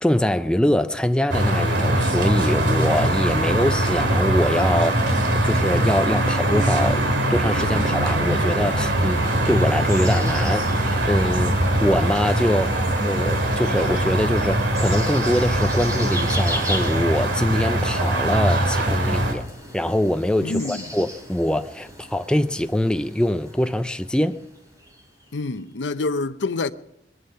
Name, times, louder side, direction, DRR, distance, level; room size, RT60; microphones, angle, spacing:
voice 1, 0.0-7.0 7.3-19.5 19.7-24.4, left 1 dB, 5° left, 0.5 m, -23 dB
sound 1, 1.3-19.3, right 1 dB, 90° right, 2.5 m, -22 dB
sound 2, 8.8-25.6, equal, 20° right, 3.9 m, -38 dB
voice 2, 20.4-20.8 25.3-26.7, left 3 dB, 90° left, 0.7 m, -26 dB
21.5 x 11.5 x 5.7 m
head